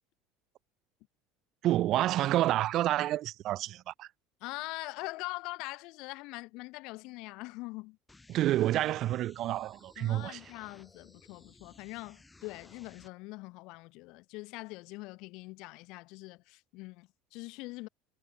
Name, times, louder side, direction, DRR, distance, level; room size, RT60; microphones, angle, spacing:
voice 1, 1.6-4.1 8.3-10.4, right 14 dB, 45° right, 0.4 m, -29 dB
voice 2, 4.4-8.0 10.0-17.9, left 23 dB, 65° left, 2.3 m, -43 dB
sound 1, 8.1-13.1, left 2 dB, 10° left, 2.8 m, -58 dB
cardioid pair, 135°, 0 cm